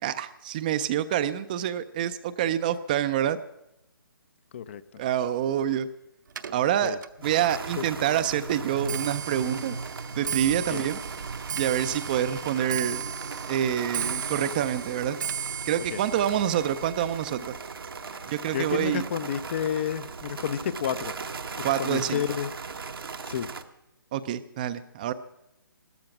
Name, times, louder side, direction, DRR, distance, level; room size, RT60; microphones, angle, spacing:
voice 1, 0.0-3.4 5.0-5.9 6.5-7.0 7.2-9.8 10.2-11.0 11.6-13.0 13.5-15.2 15.7-17.5 18.3-19.0 21.6-22.2 24.1-25.1, right 10 dB, 20° right, 13 dB, 0.4 m, -27 dB
Clock, 6.3-19.6 20.0-20.4 21.2-21.3 21.6-22.0 22.3-22.4, right 7 dB, 60° right, 0.9 m, -37 dB
sound 1, 7.2-23.6, right 4 dB, 80° right, 1.1 m, -38 dB
voice 2, 18.5-21.1 21.6-22.5 23.3-23.5, left 9 dB, 30° left, 16 dB, 0.5 m, -30 dB
15.5 x 13.0 x 5.9 m, 0.83 s
hypercardioid pair, 155°, 12 cm